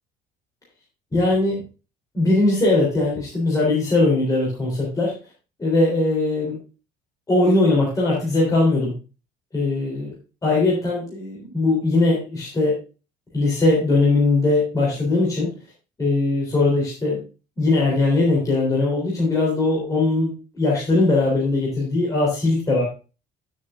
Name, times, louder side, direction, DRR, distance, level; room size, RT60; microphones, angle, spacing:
voice 1, 1.1-1.6 2.1-5.1 5.6-6.6 7.3-8.9 9.5-10.1 10.4-12.8 13.3-15.5 16.0-17.2 17.6-22.8, left 2 dB, 20° left, -4 dB, 3.6 m, -20 dB
10.5 x 7.4 x 2.5 m, 0.32 s
cardioid pair, 155°, 18 cm